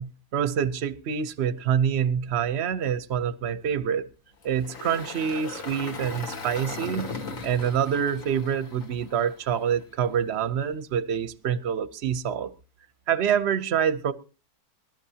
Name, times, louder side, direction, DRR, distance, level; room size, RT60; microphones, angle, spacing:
voice 1, 0.0-4.1 4.4-7.2 7.4-12.5 13.1-14.1, right 8 dB, 50° right, 16 dB, 0.9 m, -26 dB
Engine, 4.4-9.7, left 3 dB, 55° left, 2.0 m, -38 dB
23.0 x 12.0 x 2.8 m, 0.30 s
omnidirectional pair, 1.7 m